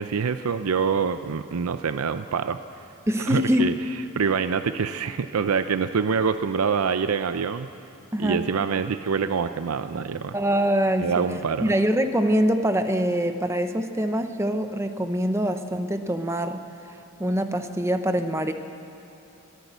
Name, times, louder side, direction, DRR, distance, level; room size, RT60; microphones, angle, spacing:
voice 1, 0.0-2.6 3.2-3.7 4.2-7.7 8.2-10.4 11.0-11.7, right 6 dB, 85° right, 11 dB, 0.5 m, -25 dB
voice 2, 3.1-3.7 8.1-8.4 10.3-11.2 11.6-16.6 17.2-18.5, equal, 10° right, 8 dB, 0.7 m, -24 dB
21.5 x 15.0 x 8.0 m, 3.0 s
head